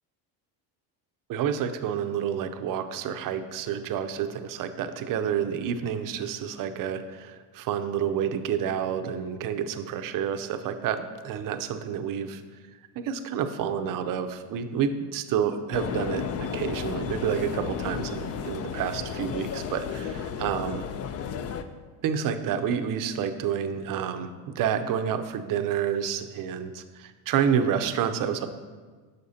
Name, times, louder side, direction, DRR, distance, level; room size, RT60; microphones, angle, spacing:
voice 1, 1.3-12.4 12.9-16.2 16.5-20.8 22.0-28.5, right 8 dB, 50° right, 8 dB, 0.6 m, -29 dB
sound 1, 15.7-21.6, left 7 dB, 35° left, 0.4 m, -33 dB
6.5 x 6.4 x 2.7 m, 1.5 s
supercardioid pair, 90°, 44 cm